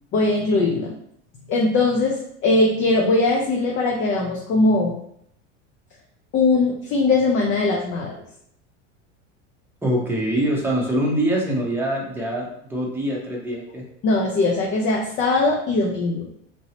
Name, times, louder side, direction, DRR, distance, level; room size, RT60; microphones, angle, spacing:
voice 1, 0.1-0.9 1.5-5.0 6.3-8.1 14.0-16.3, left 3 dB, 35° left, -1 dB, 0.5 m, -20 dB
voice 2, 9.8-13.8, right 1 dB, 5° right, -2 dB, 0.8 m, -24 dB
3.0 x 2.7 x 2.9 m, 0.71 s
supercardioid pair, 105°, 37 cm